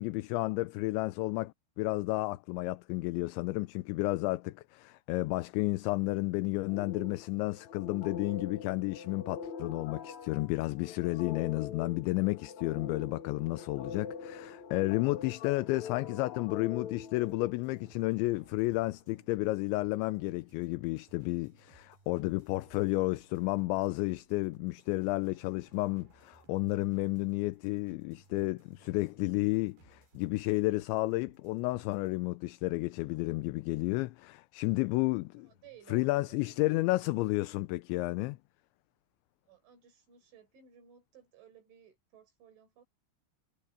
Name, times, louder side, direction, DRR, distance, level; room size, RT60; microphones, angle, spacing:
voice 1, 0.0-35.5 35.9-38.4, left 21 dB, 85° left, 3.0 m, -32 dB
sound 1, 6.7-18.0, left 6 dB, 55° left, 2.3 m, -44 dB
sound 2, 16.9-32.2, right 4 dB, 60° right, 6.9 m, -63 dB
voice 2, 35.3-36.9 39.5-42.8, right 9 dB, 85° right, 8.2 m, -57 dB
omnidirectional pair, 5.3 m